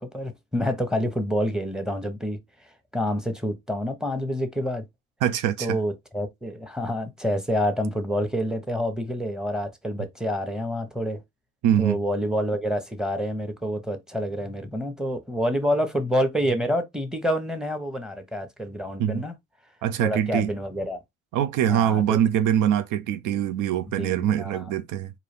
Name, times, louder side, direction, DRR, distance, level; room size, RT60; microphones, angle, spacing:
voice 1, 0.0-2.4 2.9-4.8 5.6-11.2 11.8-19.3 20.0-21.0 21.7-22.2 23.9-24.6, equal, ahead, 1.0 m, -27 dB
voice 2, 5.2-5.8 11.6-12.0 19.0-19.2 19.8-20.5 21.3-25.1, right 10 dB, 90° right, 0.5 m, -23 dB
3.9 x 2.8 x 3.3 m
cardioid pair, 90°, 30 cm